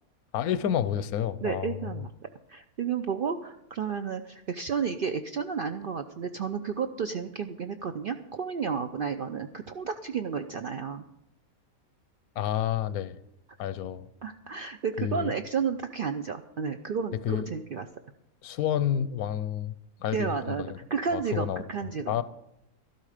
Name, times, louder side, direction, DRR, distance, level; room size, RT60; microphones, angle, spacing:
voice 1, 0.3-1.9 12.4-13.2 13.6-14.1 15.0-15.3 17.2-17.5 18.4-19.7 20.0-20.8 21.1-21.7 22.1-22.2, left 10 dB, 85° left, 1.1 m, -29 dB
voice 2, 1.4-2.1 2.5-11.0 14.2-17.9 20.1-20.6 20.9-22.2, right 6 dB, 65° right, 0.5 m, -32 dB
12.5 x 12.5 x 5.0 m
omnidirectional pair, 1.5 m